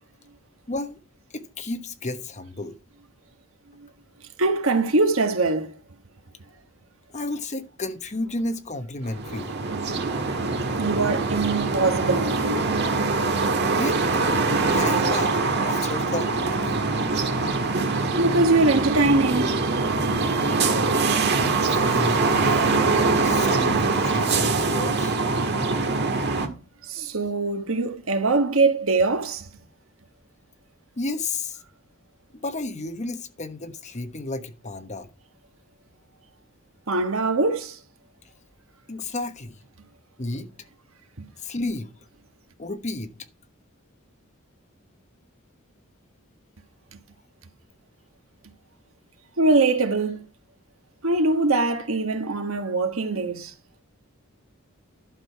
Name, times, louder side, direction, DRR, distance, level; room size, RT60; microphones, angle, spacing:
voice 1, 0.7-1.0 1.3-2.7 7.1-9.5 13.8-14.0 14.5-15.4 15.7-16.9 21.7-25.2 31.0-31.6 32.4-35.1 38.9-39.6 40.2-40.5 41.4-41.9 42.6-43.1, left 2 dB, 35° left, 1.1 m, -32 dB
voice 2, 4.4-5.7 9.9-10.1 10.8-12.4 18.2-19.8 26.8-29.5 36.9-37.8 41.2-41.3 49.4-50.2 51.0-53.5, right 3 dB, 75° right, 1.4 m, -22 dB
sound 1, 9.1-26.5, right 3 dB, 55° right, 1.6 m, -23 dB
11.5 x 6.2 x 4.7 m
head